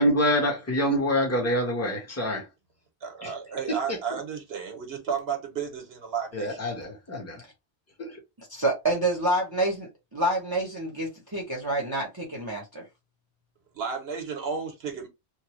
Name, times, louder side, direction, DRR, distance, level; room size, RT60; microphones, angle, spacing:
voice 1, 0.0-2.5 3.2-3.3 3.7-4.2 6.3-7.4 8.0-8.2, equal, 15° left, 1.0 m, -26 dB
voice 2, 3.0-6.6 13.7-15.1, right 6 dB, 70° right, 1.1 m, -33 dB
voice 3, 8.5-12.8, right 1 dB, 25° right, 0.8 m, -28 dB
3.1 x 2.2 x 3.0 m
omnidirectional pair, 1.1 m